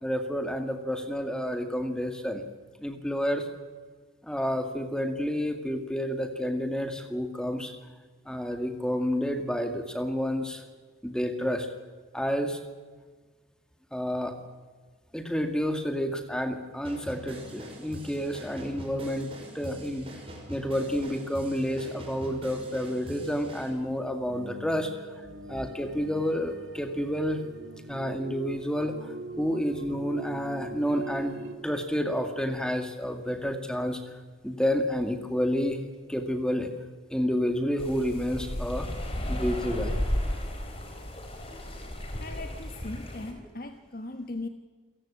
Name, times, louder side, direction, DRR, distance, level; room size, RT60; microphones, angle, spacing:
voice 1, 0.0-2.5 2.8-3.5 4.2-7.7 8.3-10.6 11.0-11.7 12.1-12.6 13.9-14.4 15.1-20.1 20.5-25.1 25.5-27.4 27.9-31.4 31.6-34.0 34.4-35.8 36.1-36.7 37.1-38.9 39.3-39.9, equal, 5° left, 6 dB, 2.2 m, -30 dB
sound 1, 16.8-23.7, right 1 dB, 30° right, 6.0 m, -43 dB
sound 2, 24.3-31.5, right 2 dB, 70° right, 2.4 m, -42 dB
sound 3, 37.8-43.3, left 1 dB, 30° left, 4.3 m, -33 dB
voice 2, 42.2-44.5, left 2 dB, 50° left, 7 dB, 1.3 m, -38 dB
28.0 x 18.0 x 8.6 m, 1.4 s
head